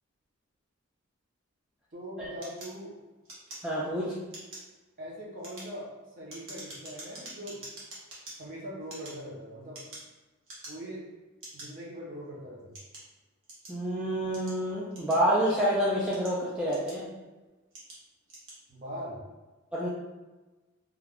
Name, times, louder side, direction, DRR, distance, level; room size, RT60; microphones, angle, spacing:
voice 1, 1.9-2.9 5.0-7.6 8.4-9.8 10.7-11.0 11.5-12.7 18.7-19.2, equal, 40° right, -6 dB, 0.8 m, -41 dB
sound 1, 2.4-4.0 4.3-4.7 5.3-8.3 8.8-10.1 10.4-11.0 11.4-11.7 12.3-13.8 14.3-15.5 16.0-17.2 17.7-18.0 18.3-18.6, right 2 dB, 65° right, 1.0 m, -46 dB
voice 2, 3.6-4.2 13.7-17.1 19.7-19.9, right 1 dB, 5° right, -7 dB, 0.3 m, -28 dB
2.4 x 2.3 x 3.4 m, 1.2 s
head